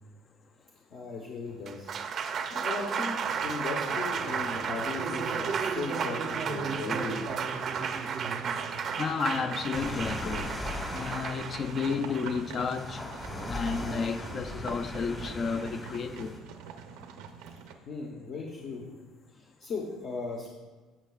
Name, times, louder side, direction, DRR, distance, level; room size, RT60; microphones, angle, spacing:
voice 1, 0.9-2.0 2.2-7.2 17.9-18.9 19.4-20.5, left 3 dB, 50° left, 1.0 m, -37 dB
Applause, 1.5-13.7, right 6 dB, 40° right, 0.5 m, -33 dB
sound 1, 3.2-17.7, right 6 dB, 90° right, 0.7 m, -46 dB
voice 2, 8.8-10.6 10.9-13.1 13.5-16.4 18.5-18.6, left 5 dB, 35° left, 0.4 m, -32 dB
sound 2, 9.7-16.4, left 1 dB, 20° left, 1.1 m, -39 dB
15.0 x 5.6 x 2.4 m
cardioid pair, 135°, 0 cm